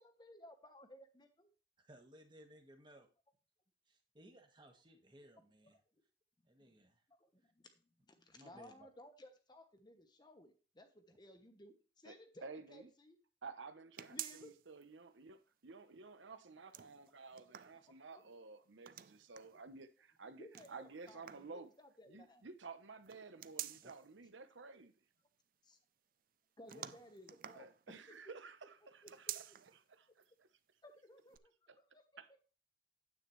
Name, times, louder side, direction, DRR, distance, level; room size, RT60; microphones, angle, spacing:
voice 1, 0.0-1.5 5.6-5.7 6.6-6.8 7.1-13.2 14.1-14.5 18.1-18.2 19.5-19.6 20.4-22.4 23.7-23.8 25.6-25.8 26.6-28.2 29.0-29.4 30.8-32.0, left 1 dB, 20° left, 1.1 m, -59 dB
voice 2, 1.8-3.1 3.8-5.8 6.5-7.0 7.4-7.5 8.3-8.9 23.8-23.9 26.7-26.9, equal, 25° right, 1.5 m, -61 dB
voice 3, 12.0-12.9 13.4-21.7 22.1-24.9 27.5-29.4 29.9-30.2 32.2-32.4, right 4 dB, 80° right, 0.9 m, -53 dB
sound 1, 14.0-14.8 15.2-15.3 16.5-18.2 18.8-19.6 20.5-21.6 23.0-24.1 26.7-28.2 29.0-29.8 30.2-30.3 31.3-31.4, right 12 dB, 45° right, 0.4 m, -49 dB
9.7 x 8.2 x 3.2 m
head